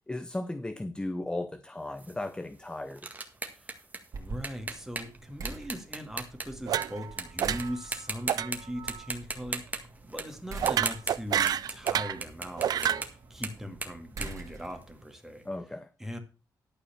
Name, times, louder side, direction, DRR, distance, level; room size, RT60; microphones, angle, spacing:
voice 1, 0.1-3.1 15.4-15.9, left 2 dB, 15° left, 0.7 m, -36 dB
sound 1, 2.0-6.9 7.2-7.6 7.9-8.6 8.9-15.2, right 3 dB, 25° right, 1.8 m, -38 dB
voice 2, 4.1-15.4 16.0-16.2, equal, 5° right, 2.1 m, -40 dB
sound 2, 4.1-15.0, right 3 dB, 55° right, 2.8 m, -46 dB
sound 3, 6.7-7.1 7.4-7.8 8.3-8.5 8.8-9.1 10.6-12.2 12.6-13.1, right 10 dB, 70° right, 0.4 m, -28 dB
12.0 x 4.8 x 6.9 m
cardioid pair, 125°, 7 cm